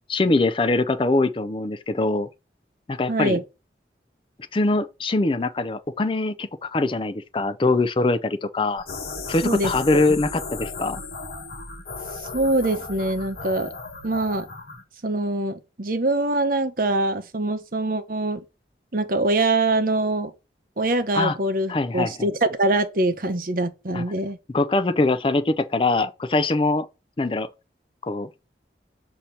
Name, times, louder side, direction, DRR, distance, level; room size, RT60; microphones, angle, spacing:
voice 1, 0.1-2.3 2.9-3.4 4.5-8.8 9.3-11.0 21.1-21.4 21.7-22.2 23.9-24.0 24.5-26.9 27.2-27.5 28.0-28.3, left 2 dB, 30° left, 0.4 m, -23 dB
voice 2, 3.1-3.4 9.4-10.2 12.3-13.7 14.0-14.5 15.0-18.4 18.9-20.3 20.8-24.4, right 2 dB, 50° right, 0.9 m, -24 dB
sound 1, 8.8-14.8, left 3 dB, 55° left, 1.3 m, -35 dB
6.6 x 2.9 x 5.7 m
head